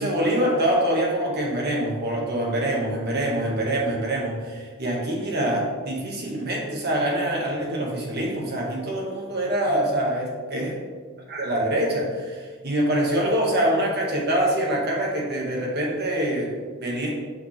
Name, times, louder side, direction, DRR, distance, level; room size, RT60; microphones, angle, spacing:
voice 1, 0.0-10.7 11.3-17.1, right 1 dB, 50° right, -2 dB, 1.7 m, -25 dB
8.7 x 5.6 x 3.3 m, 1.5 s
head